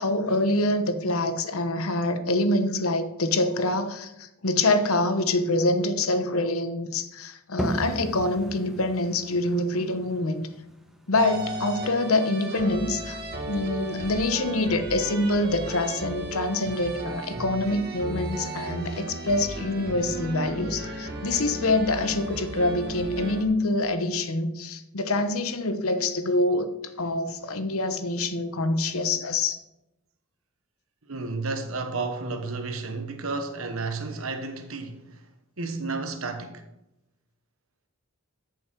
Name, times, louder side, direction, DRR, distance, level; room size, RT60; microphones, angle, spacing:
voice 1, 0.0-10.5 11.1-26.7 27.0-29.6, left 2 dB, 80° left, 1.1 m, -25 dB
sound 1, 7.6-13.0, right 1 dB, ahead, 1.1 m, -37 dB
sound 2, 11.1-23.4, right 1 dB, 45° right, 1.8 m, -35 dB
voice 2, 31.1-35.2 35.6-36.6, right 3 dB, 75° right, 1.2 m, -32 dB
14.5 x 7.0 x 4.7 m
head